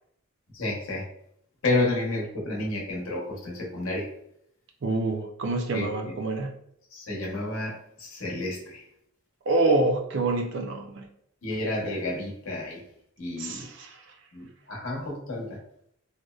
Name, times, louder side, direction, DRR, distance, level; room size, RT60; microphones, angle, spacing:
voice 1, 0.5-1.0 1.6-4.1 5.7-6.1 6.9-8.8 11.4-12.8 13.2-13.7 14.3-15.6, left 2 dB, 85° left, -2 dB, 0.8 m, -30 dB
voice 2, 4.8-6.5 9.5-11.1 13.4-14.0, right 2 dB, 60° right, 3 dB, 0.4 m, -26 dB
2.6 x 2.0 x 2.3 m, 0.71 s
head